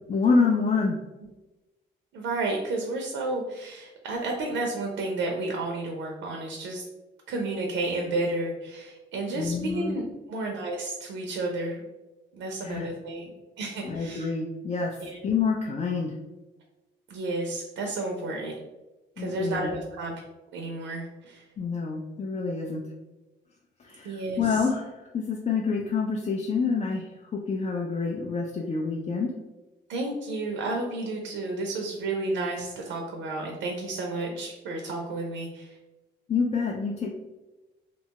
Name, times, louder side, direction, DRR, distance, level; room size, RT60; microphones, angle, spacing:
voice 1, 0.1-1.0 9.3-9.9 12.6-12.9 13.8-16.2 19.2-19.7 21.6-22.8 23.8-29.3 36.3-37.1, left 4 dB, 35° left, 0 dB, 0.4 m, -27 dB
voice 2, 2.1-6.8 7.3-11.8 12.3-13.3 13.6-14.3 15.0-15.2 17.1-18.5 19.2-20.1 20.5-21.4 24.0-24.7 29.9-35.8, right 2 dB, 80° right, 1 dB, 0.5 m, -31 dB
2.8 x 2.2 x 2.8 m, 1.1 s
cardioid pair, 90°, 20 cm